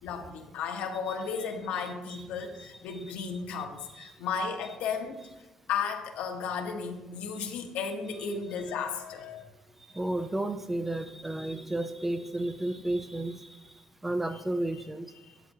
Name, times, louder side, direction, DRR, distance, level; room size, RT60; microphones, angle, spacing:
voice 1, 0.0-5.2 5.7-9.4 9.9-10.0 14.3-14.4 14.7-14.8 15.2-15.4, left 6 dB, 85° left, 3 dB, 1.2 m, -34 dB
voice 2, 2.6-3.0 3.9-4.1 9.9-13.5 14.0-15.1, right 1 dB, 10° right, 10 dB, 0.4 m, -32 dB
11.0 x 8.7 x 2.7 m, 1.0 s
cardioid pair, 175°, 2 cm